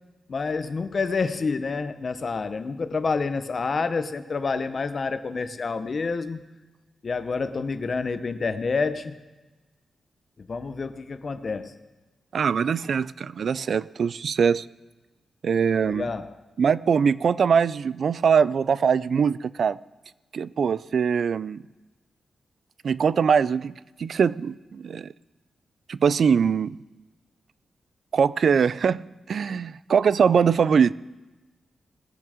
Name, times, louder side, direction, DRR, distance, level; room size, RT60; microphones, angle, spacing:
voice 1, 0.3-6.4 7.0-9.2 10.4-11.7 15.8-16.3, left 4 dB, 45° left, 11 dB, 0.8 m, -28 dB
voice 2, 12.3-14.7 15.4-16.1 16.6-19.8 20.3-21.6 22.8-23.7 24.0-25.1 25.9-26.8 28.1-30.9, right 6 dB, 60° right, 18 dB, 0.3 m, -22 dB
20.0 x 7.3 x 5.0 m, 1.2 s
wide cardioid pair, 105°, 0 cm